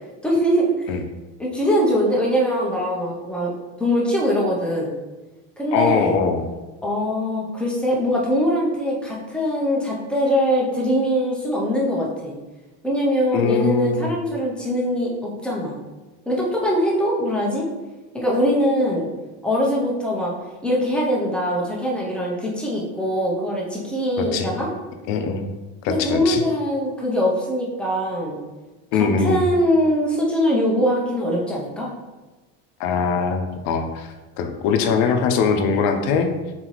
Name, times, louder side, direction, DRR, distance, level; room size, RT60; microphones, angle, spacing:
voice 1, 0.2-0.7 1.4-3.5 3.8-4.9 5.6-6.1 6.8-12.3 12.8-15.8 16.3-17.7 18.1-19.1 19.4-20.3 20.6-24.7 25.9-28.4 29.2-31.9, equal, 5° left, -4 dB, 0.5 m, -22 dB
voice 2, 5.7-6.4 13.3-14.2 24.2-24.5 25.1-25.5 25.8-26.4 28.9-29.5 32.8-34.1 34.4-36.3, left 5 dB, 75° left, 6 dB, 0.6 m, -21 dB
4.0 x 3.9 x 3.0 m, 1.2 s
cardioid pair, 180°, 34 cm